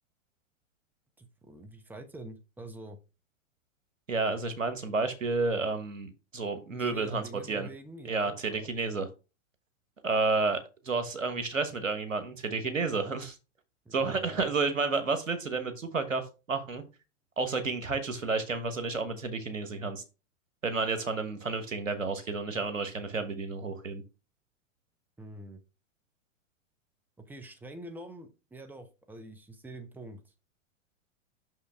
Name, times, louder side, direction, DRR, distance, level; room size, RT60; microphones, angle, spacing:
voice 1, 1.2-3.0 6.7-8.7 13.8-14.5 25.2-25.6 27.2-30.2, right 2 dB, 5° right, 7 dB, 0.9 m, -46 dB
voice 2, 4.1-7.2 7.5-7.7 8.0-9.1 10.0-10.6 10.8-13.4 13.9-16.2 16.5-16.8 17.4-20.0 20.6-24.0, right 4 dB, 85° right, 9 dB, 1.4 m, -31 dB
6.2 x 5.6 x 3.4 m, 0.30 s
figure-of-eight pair, 105°, 38 cm